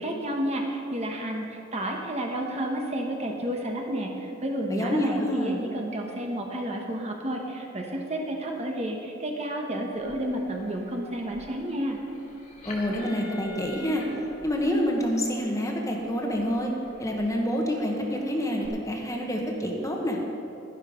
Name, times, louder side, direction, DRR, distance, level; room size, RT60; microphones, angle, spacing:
voice 1, 0.0-12.0, right 1 dB, 35° right, 1 dB, 1.3 m, -31 dB
voice 2, 4.7-5.6 12.6-14.0 14.4-16.7 17.0-20.2, equal, 15° left, 0 dB, 1.4 m, -27 dB
sound 1, 9.9-18.7, left 3 dB, 45° left, 2.1 m, -47 dB
11.5 x 11.5 x 5.2 m, 2.8 s
head